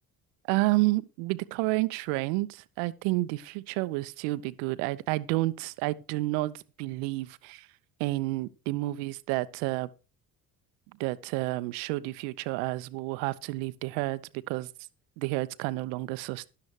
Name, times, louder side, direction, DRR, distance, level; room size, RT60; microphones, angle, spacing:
voice 1, 0.5-7.7 8.0-9.9 11.0-14.2 14.5-14.7 15.2-16.5, right 20 dB, 65° right, 0.8 m, -30 dB
12.5 x 11.5 x 3.2 m
figure-of-eight pair, 50°, 49 cm